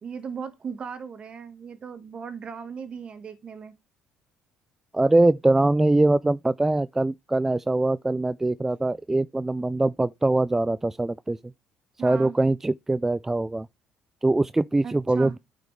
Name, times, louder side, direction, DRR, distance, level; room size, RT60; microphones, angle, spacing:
voice 1, 0.0-3.7 12.0-12.3 14.8-15.3, right 6 dB, 45° right, 1.6 m, -37 dB
voice 2, 4.9-11.4 12.0-13.7 14.2-15.4, right 2 dB, 15° right, 0.3 m, -22 dB
9.1 x 5.1 x 3.3 m
supercardioid pair, 70°, 3 cm